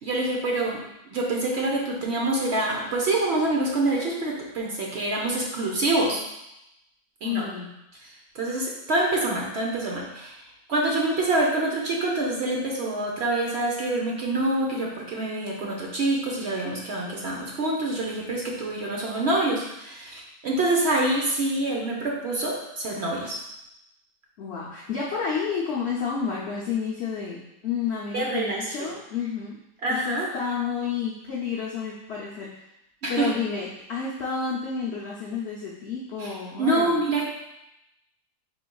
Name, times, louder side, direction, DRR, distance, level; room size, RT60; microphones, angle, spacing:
voice 1, 0.0-6.2 7.2-7.4 8.0-10.4 10.7-23.4 28.1-28.9 29.8-30.3 33.0-33.3 36.2-36.3 36.6-37.3, right 2 dB, 60° right, -2 dB, 0.7 m, -26 dB
voice 2, 7.2-7.7 24.4-29.6 29.9-32.5 33.1-37.0, left 6 dB, 65° left, -4 dB, 0.6 m, -30 dB
4.9 x 3.8 x 2.2 m, 0.86 s
omnidirectional pair, 1.8 m